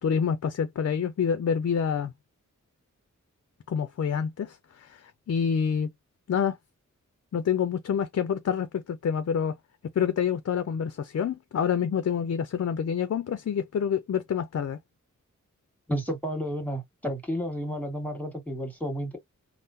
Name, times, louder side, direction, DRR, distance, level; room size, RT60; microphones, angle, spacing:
voice 1, 0.0-2.1 3.7-5.9 6.3-6.6 7.3-9.5 10.0-14.8, left 7 dB, 55° left, 0.5 m, -27 dB
voice 2, 15.9-19.2, equal, 5° left, 1.7 m, -31 dB
3.6 x 2.1 x 2.7 m
wide cardioid pair, 70°, 31 cm